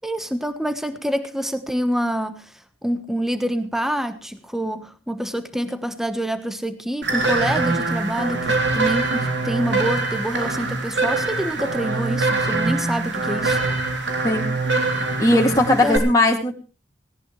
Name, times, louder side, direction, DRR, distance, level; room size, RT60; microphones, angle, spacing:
voice 1, 0.0-2.5 2.8-13.6 15.7-16.0, equal, ahead, 9 dB, 1.2 m, -26 dB
sound 1, 7.0-16.0, right 3 dB, 70° right, 3.3 m, -23 dB
voice 2, 15.2-16.5, left 1 dB, 20° left, 0 dB, 2.5 m, -18 dB
18.5 x 18.0 x 3.2 m, 0.35 s
head